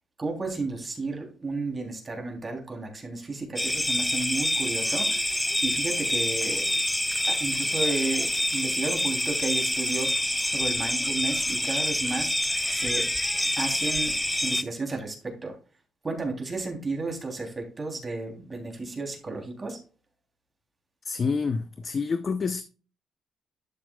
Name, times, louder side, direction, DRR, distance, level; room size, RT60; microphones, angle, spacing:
voice 1, 0.2-6.8 7.3-10.1 10.5-13.1 13.6-14.2 14.4-15.6 16.0-19.8, right 3 dB, 30° right, 3.1 m, -33 dB
sound 1, 3.6-14.6, left 1 dB, 5° left, 0.5 m, -27 dB
voice 2, 21.1-22.6, left 5 dB, 40° left, 0.7 m, -28 dB
12.0 x 6.0 x 2.3 m
cardioid pair, 90°, 0 cm